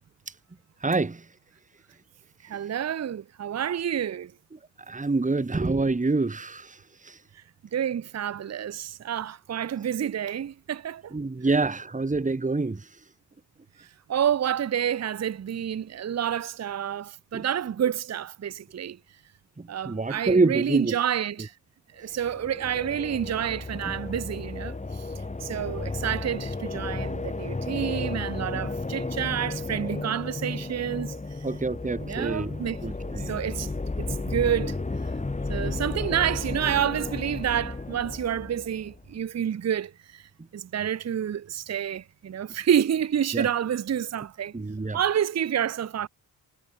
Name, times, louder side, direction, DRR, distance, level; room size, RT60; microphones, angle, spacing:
voice 1, 0.8-1.2 4.9-6.8 7.0-7.2 11.1-12.9 17.3-17.4 19.6-21.0 23.8-23.9 31.4-33.4 43.3-43.5 44.5-45.0, right 3 dB, 15° right, 1.6 m, -26 dB
voice 2, 2.4-4.3 7.3-7.4 7.7-11.2 14.1-19.0 19.7-21.5 21.9-25.1 25.4-31.2 32.0-32.8 33.2-33.7 34.0-34.8 35.5-40.2 40.5-44.5 44.9-46.1, right 9 dB, 35° right, 0.7 m, -29 dB
sound 1, 22.1-39.1, left 3 dB, 15° left, 1.3 m, -33 dB
cardioid pair, 85°, 44 cm